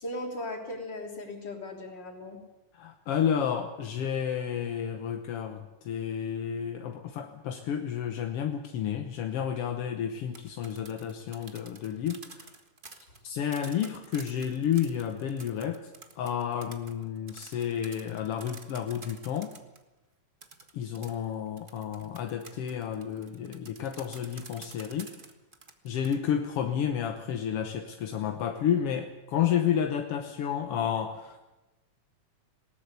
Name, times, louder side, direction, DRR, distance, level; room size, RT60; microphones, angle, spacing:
voice 1, 0.0-2.4, left 1 dB, 35° left, 2 dB, 3.7 m, -37 dB
voice 2, 2.7-12.5 13.2-15.9 16.2-19.5 20.7-25.1 25.8-31.6, left 8 dB, 60° left, 6 dB, 1.7 m, -31 dB
sound 1, 10.2-19.8 20.4-26.1, right 3 dB, 35° right, 0.8 m, -49 dB
20.0 x 18.5 x 8.2 m, 1.0 s
omnidirectional pair, 3.5 m